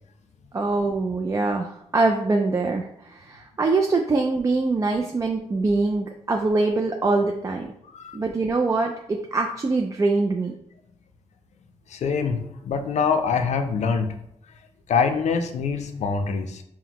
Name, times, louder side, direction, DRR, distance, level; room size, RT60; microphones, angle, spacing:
voice 1, 0.5-7.7 8.1-10.5, right 3 dB, 25° right, 2 dB, 0.3 m, -23 dB
voice 2, 11.9-14.1 14.9-16.6, left 5 dB, 70° left, 6 dB, 0.5 m, -24 dB
5.7 x 2.1 x 2.9 m, 0.76 s
wide cardioid pair, 120°, 12 cm